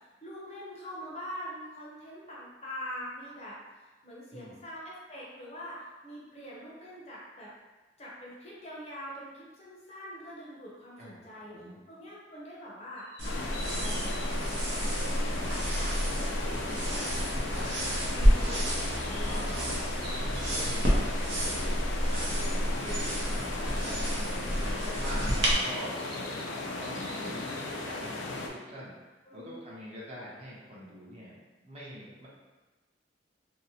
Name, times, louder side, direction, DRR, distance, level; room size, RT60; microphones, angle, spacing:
voice 1, 0.2-3.6 4.0-7.5 8.0-11.5 11.9-14.4 14.7-17.8 18.1-19.8 22.1-22.4 25.2-25.4 29.3-29.5, equal, 35° left, -5 dB, 0.6 m, -44 dB
voice 2, 11.0-11.8 20.5-21.9 22.1-28.9 29.3-32.3, equal, 35° right, -7 dB, 0.6 m, -44 dB
sound 1, 13.0-14.3 18.4-21.0 25.4-27.6, right 1 dB, 60° right, 0.9 m, -47 dB
sound 2, 13.2-28.5, left 2 dB, 85° left, 0.3 m, -37 dB
sound 3, 13.2-25.5, equal, 85° right, 0.6 m, -29 dB
2.7 x 2.0 x 2.7 m, 1.2 s
head